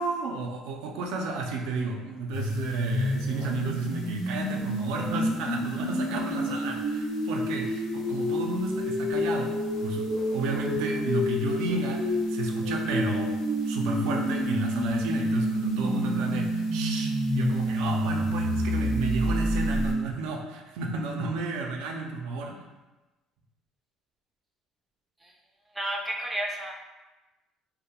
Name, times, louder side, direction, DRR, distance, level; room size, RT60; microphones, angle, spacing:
voice 1, 0.0-22.6, right 3 dB, 85° right, 2 dB, 0.3 m, -32 dB
sound 1, 2.3-19.9, equal, 80° left, 0.6 m, -28 dB
voice 2, 25.7-26.7, right 1 dB, 5° right, -1 dB, 0.3 m, -31 dB
2.2 x 2.0 x 2.8 m, 1.1 s
cardioid pair, 120°, 0 cm